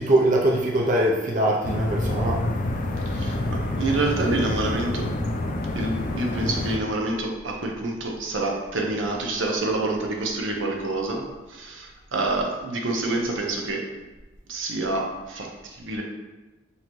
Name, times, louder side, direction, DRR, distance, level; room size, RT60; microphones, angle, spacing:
voice 1, 0.0-2.4, right 1 dB, 45° right, -1 dB, 0.5 m, -22 dB
sound 1, 1.6-6.8, left 2 dB, 45° left, 0.4 m, -27 dB
voice 2, 3.1-5.1 5.7-13.8 14.5-16.0, right 2 dB, 85° right, 1 dB, 0.8 m, -27 dB
5.5 x 3.0 x 3.0 m, 1.1 s
head